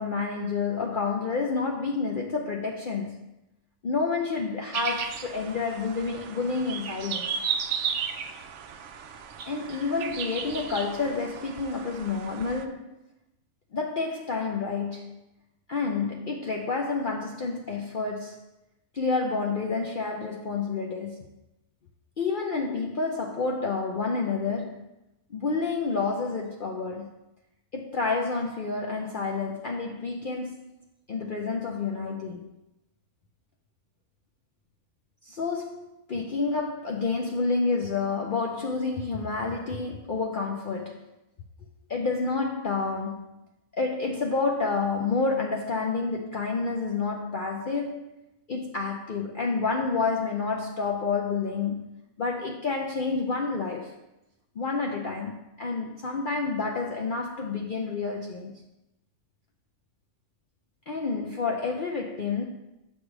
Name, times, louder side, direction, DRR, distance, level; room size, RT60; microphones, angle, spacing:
voice 1, 0.0-3.3 3.8-7.3 9.5-13.0 13.7-15.2 15.7-18.4 18.9-21.3 22.2-24.8 25.3-27.1 27.7-30.6 31.1-32.5 35.2-41.1 41.9-43.4 43.8-48.0 48.5-54.0 54.6-58.5 60.9-62.4, left 4 dB, 65° left, 0.5 m, -29 dB
sound 1, 4.7-12.6, right 7 dB, 65° right, 0.8 m, -34 dB
7.3 x 3.2 x 6.0 m
omnidirectional pair, 1.6 m